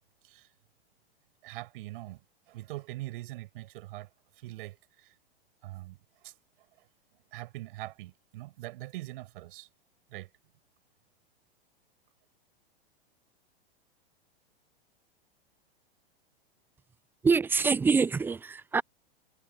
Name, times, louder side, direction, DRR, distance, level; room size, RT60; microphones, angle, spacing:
voice 1, 1.4-2.2 2.5-4.1 4.3-5.1 5.6-6.3 7.3-9.7 10.1-10.3, right 18 dB, 60° right, 6.8 m, -42 dB
voice 2, 17.2-18.8, right 5 dB, 5° right, 0.3 m, -25 dB
hypercardioid pair, 105°, 31 cm